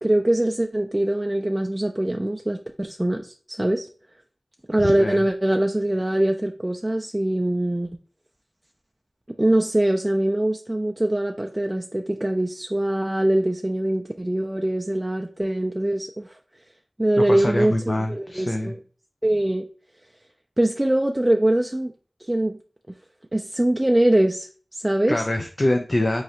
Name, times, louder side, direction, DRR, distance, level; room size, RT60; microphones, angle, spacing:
voice 1, 0.0-3.9 4.7-7.9 9.3-16.4 17.0-18.8 19.2-19.7 20.6-21.9 22.2-22.6 23.3-25.3, right 1 dB, 25° right, 3 dB, 0.3 m, -23 dB
voice 2, 4.8-5.2 17.3-18.7 25.1-26.2, left 1 dB, 55° left, 4 dB, 0.4 m, -24 dB
3.8 x 3.1 x 2.8 m, 0.41 s
wide cardioid pair, 45°, 0 cm